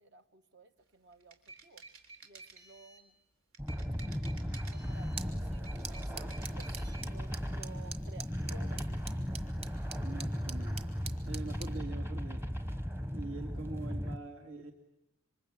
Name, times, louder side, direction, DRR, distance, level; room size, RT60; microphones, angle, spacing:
voice 1, 0.0-1.8 2.2-3.2 4.5-9.0, right 3 dB, 55° right, 9 dB, 1.2 m, -55 dB
sound 1, 1.1-3.1 3.5-5.2 5.5-7.1, right 4 dB, 90° right, 3.7 m, -52 dB
sound 2, 3.6-14.2, equal, 10° right, 1.0 m, -36 dB
sound 3, 4.9-11.8, right 5 dB, 30° right, 1.6 m, -48 dB
voice 2, 10.0-10.8 11.3-12.4 13.1-14.7, right 3 dB, 75° right, 1 dB, 2.4 m, -44 dB
27.0 x 24.5 x 8.7 m, 0.92 s
head